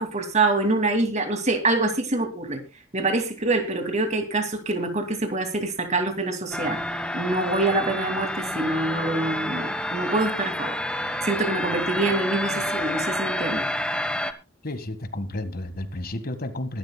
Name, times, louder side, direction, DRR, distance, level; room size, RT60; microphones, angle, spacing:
voice 1, 0.0-2.6 2.9-6.8 7.1-10.8 11.2-13.7, right 2 dB, 40° right, 6 dB, 2.4 m, -25 dB
sound 1, 6.5-14.3, left 1 dB, 5° left, 1.1 m, -29 dB
voice 2, 14.6-16.8, left 1 dB, 50° left, 10 dB, 1.6 m, -32 dB
22.0 x 12.0 x 2.3 m, 0.28 s
head